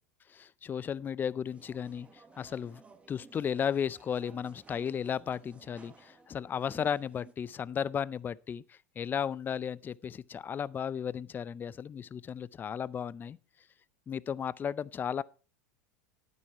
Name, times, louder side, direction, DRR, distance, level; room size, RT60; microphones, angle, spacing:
voice 1, 0.3-2.8 3.1-13.4 14.1-15.2, left 8 dB, 25° left, 0.5 m, -34 dB
sound 1, 1.5-7.3, right 4 dB, 15° right, 1.4 m, -57 dB
11.0 x 9.6 x 4.6 m
hypercardioid pair, 90°, 8 cm